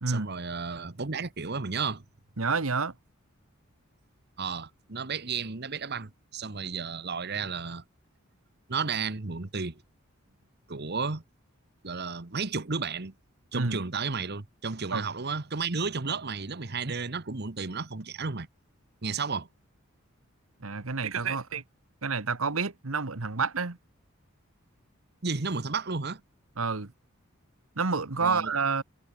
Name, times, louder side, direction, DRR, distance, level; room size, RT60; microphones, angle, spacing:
voice 1, 0.1-2.0 4.4-7.8 8.7-9.8 10.7-11.2 11.8-13.1 13.5-18.5 19.0-19.5 25.2-26.2 28.2-28.5, right 4 dB, 50° right, 1.3 m, -33 dB
voice 2, 2.4-2.9 13.5-13.8 14.9-15.1 20.6-21.6 22.0-23.8 26.6-26.9 27.7-28.8, right 4 dB, 80° right, 1.5 m, -29 dB
head